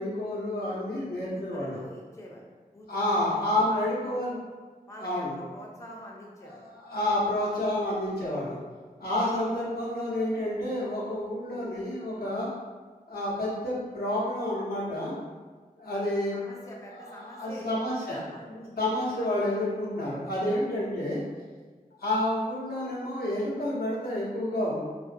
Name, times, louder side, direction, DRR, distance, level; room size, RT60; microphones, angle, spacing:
voice 1, 0.0-1.8 2.9-4.3 5.0-5.4 6.4-8.6 9.0-12.6 13.1-15.1 15.8-16.4 17.1-18.2 18.5-21.2 22.0-24.8, left 1 dB, 85° left, -7 dB, 0.7 m, -29 dB
voice 2, 1.3-2.4 2.7-4.2 4.9-6.6 16.3-18.5 19.3-19.4, equal, 20° left, -2 dB, 0.4 m, -46 dB
2.4 x 2.1 x 2.5 m, 1.4 s
wide cardioid pair, 85°, 15 cm